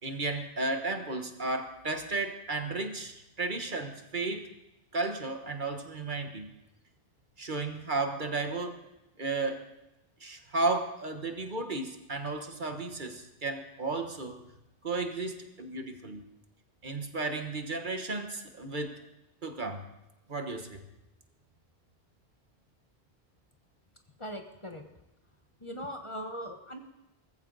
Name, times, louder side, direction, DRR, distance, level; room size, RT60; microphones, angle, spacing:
voice 1, 0.0-4.5 4.9-6.5 7.4-8.8 9.2-9.6 10.2-14.4 14.8-16.2 16.8-19.0 19.4-19.9 20.3-20.8, right 3 dB, 50° right, 6 dB, 1.5 m, -33 dB
voice 2, 24.2-24.8 25.6-26.8, equal, 30° left, 5 dB, 1.2 m, -40 dB
19.0 x 15.0 x 4.0 m, 0.93 s
omnidirectional pair, 1.1 m